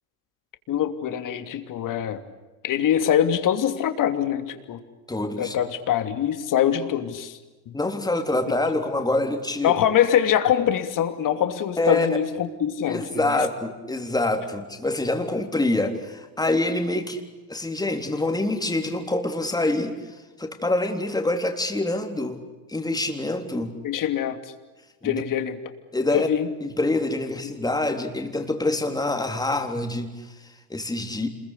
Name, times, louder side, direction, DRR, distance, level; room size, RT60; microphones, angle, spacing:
voice 1, 0.7-2.2 2.6-4.8 5.4-7.4 7.7-7.8 9.6-13.0 13.3-13.4 23.8-24.4 25.0-25.6 26.1-26.5, left 10 dB, 45° left, 8 dB, 2.9 m, -23 dB
voice 2, 5.1-5.5 7.7-9.7 11.8-12.1 12.9-17.2 17.5-20.0 20.4-22.4 22.7-23.7 25.0-25.2 25.9-26.3 26.6-31.3, left 2 dB, 10° left, 4 dB, 3.7 m, -26 dB
27.0 x 22.5 x 8.4 m, 1.2 s
supercardioid pair, 110°, 46 cm